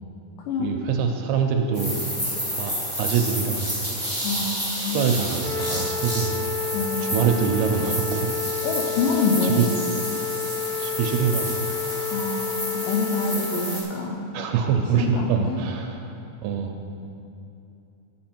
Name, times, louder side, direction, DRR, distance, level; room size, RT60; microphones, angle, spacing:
voice 1, 0.6-2.0 2.5-3.7 4.8-6.4 7.0-8.4 9.5-9.7 10.8-11.6 14.3-16.1 16.4-16.7, right 7 dB, 80° right, 3 dB, 2.4 m, -24 dB
sound 1, 1.7-13.8, equal, 15° left, 1.9 m, -30 dB
voice 2, 4.2-5.1 6.7-7.3 8.6-9.7 12.1-14.3 14.9-15.6 16.7-17.1, left 4 dB, 85° left, -1 dB, 1.9 m, -26 dB
sound 2, 5.4-13.4, left 7 dB, 65° left, 1.9 m, -30 dB
11.5 x 7.6 x 4.4 m, 2.7 s
omnidirectional pair, 4.8 m